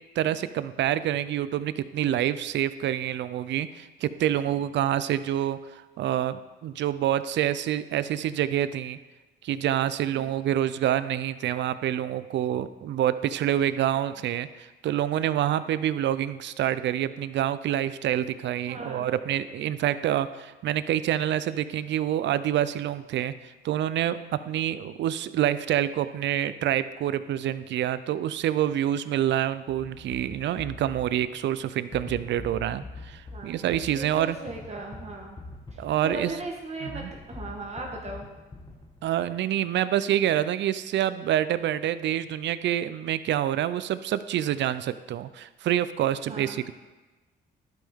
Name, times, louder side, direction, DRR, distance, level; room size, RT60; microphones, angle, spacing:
voice 1, 0.2-9.0 9.4-23.3 23.6-24.2 24.5-34.4 35.8-36.3 36.8-37.1 39.0-46.7, right 11 dB, 65° right, 14 dB, 0.4 m, -27 dB
voice 2, 18.7-19.1 24.4-24.5 33.3-33.5 33.9-35.4 35.7-38.3 46.3-46.6, right 2 dB, 35° right, 0 dB, 1.4 m, -38 dB
sound 1, 29.7-39.2, left 3 dB, 20° left, 1.3 m, -44 dB
11.5 x 5.5 x 3.6 m, 1.2 s
cardioid pair, 90°, 20 cm